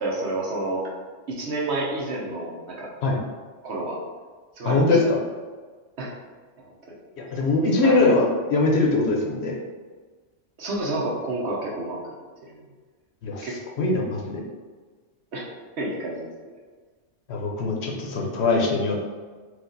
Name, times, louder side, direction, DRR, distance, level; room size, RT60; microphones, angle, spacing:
voice 1, 0.0-0.9 1.3-2.9 3.6-4.0 4.6-4.8 6.0-6.1 7.6-8.1 10.6-12.1 12.5-12.7 13.4-13.6 15.3-15.5 15.8-16.3, right 2 dB, 65° right, -3 dB, 1.1 m, -29 dB
voice 2, 4.6-5.2 7.3-9.6 13.2-13.5 13.8-14.4 17.3-19.0, left 3 dB, 65° left, -1 dB, 0.9 m, -22 dB
4.4 x 2.4 x 3.9 m, 1.4 s
omnidirectional pair, 1.3 m